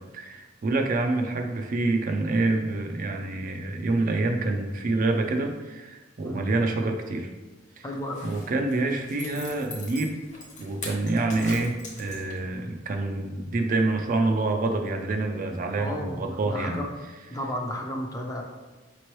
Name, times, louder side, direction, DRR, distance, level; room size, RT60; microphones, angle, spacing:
voice 1, 0.1-7.3 7.8-7.9 8.2-10.2 10.6-16.8, right 2 dB, 45° right, 4 dB, 0.4 m, -27 dB
voice 2, 7.8-8.3 15.8-16.9 17.3-18.4, equal, 20° left, 1 dB, 0.5 m, -33 dB
Zipper (clothing), 8.0-12.6 12.9-13.0, left 2 dB, 40° left, 0.9 m, -41 dB
5.1 x 3.0 x 3.0 m, 1.2 s
head